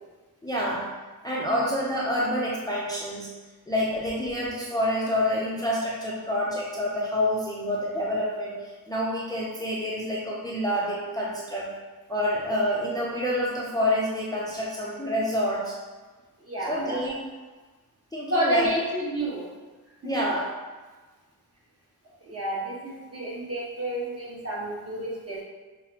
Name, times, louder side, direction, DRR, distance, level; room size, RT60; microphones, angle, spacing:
voice 1, 0.4-1.0 1.2-3.3 3.7-11.8 12.1-15.8 16.7-17.3 18.1-18.7 20.0-20.6, equal, 10° left, -5 dB, 0.5 m, -28 dB
voice 2, 16.5-17.0 18.3-19.5 20.0-20.1 22.2-25.4, right 1 dB, 40° right, -6 dB, 1.1 m, -29 dB
5.7 x 2.0 x 2.8 m, 1.3 s
wide cardioid pair, 100°, 35 cm